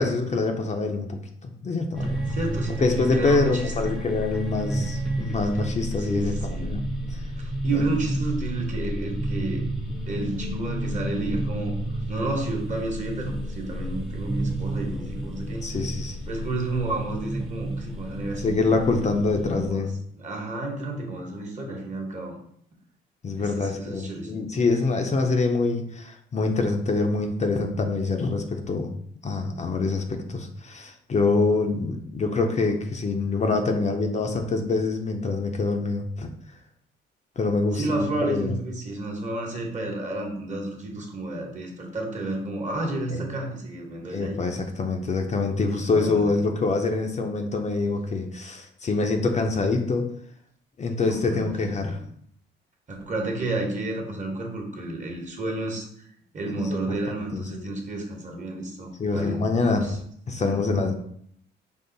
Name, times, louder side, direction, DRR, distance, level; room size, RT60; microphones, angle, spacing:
voice 1, 0.0-2.2 2.8-6.3 6.6-6.8 7.1-7.2 7.7-7.9 15.6-16.2 18.4-19.9 23.2-28.9 29.2-36.3 37.4-38.5 43.1-43.3 44.1-50.1 50.8-52.0 56.7-56.8 57.2-57.7 59.0-59.9 60.3-60.9, left 3 dB, 35° left, 3 dB, 0.6 m, -25 dB
sound 1, 1.9-19.7, right 1 dB, ahead, 0.7 m, -31 dB
voice 2, 2.3-3.9 6.1-6.8 7.4-9.6 10.1-11.8 12.1-15.6 16.3-18.7 19.5-19.9 20.2-22.4 23.4-24.4 37.7-44.4 45.8-46.4 51.1-52.0 52.9-55.9 56.3-60.0 60.4-60.6, right 2 dB, 40° right, 1 dB, 1.2 m, -31 dB
5.3 x 2.0 x 3.9 m, 0.67 s
cardioid pair, 90°, 20 cm